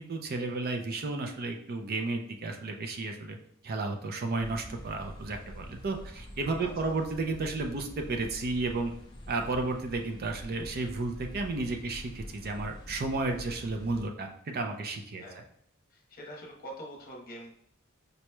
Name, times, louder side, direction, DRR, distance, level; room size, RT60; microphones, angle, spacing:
voice 1, 0.0-3.4 3.6-8.9 9.3-15.2, right 3 dB, 45° right, 4 dB, 0.5 m, -33 dB
sound 1, 4.4-14.1, equal, 20° left, 0.8 m, -46 dB
voice 2, 6.6-6.9 15.2-15.5 15.9-17.6, equal, 45° left, -1 dB, 1.0 m, -45 dB
5.3 x 3.0 x 2.2 m, 0.72 s
head